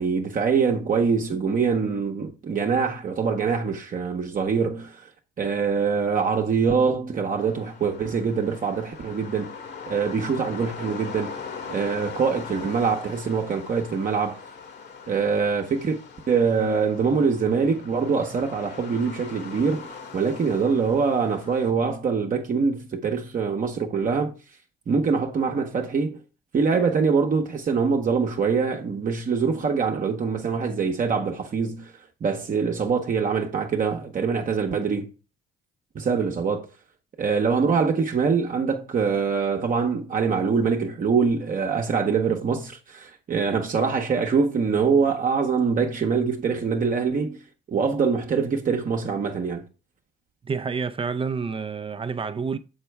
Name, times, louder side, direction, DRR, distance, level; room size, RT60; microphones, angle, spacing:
voice 1, 0.0-5.1 5.4-9.5 9.9-11.3 11.7-14.4 15.1-16.0 16.3-24.3 24.9-26.2 26.5-31.9 32.2-35.1 35.9-36.7 37.2-47.4 47.7-49.6, right 5 dB, 45° right, 1.0 m, -24 dB
sound 1, 7.4-21.7, left 5 dB, 60° left, 1.6 m, -40 dB
voice 2, 50.4-52.6, right 5 dB, 30° right, 0.6 m, -28 dB
6.8 x 5.7 x 3.4 m
cardioid pair, 85°, 20 cm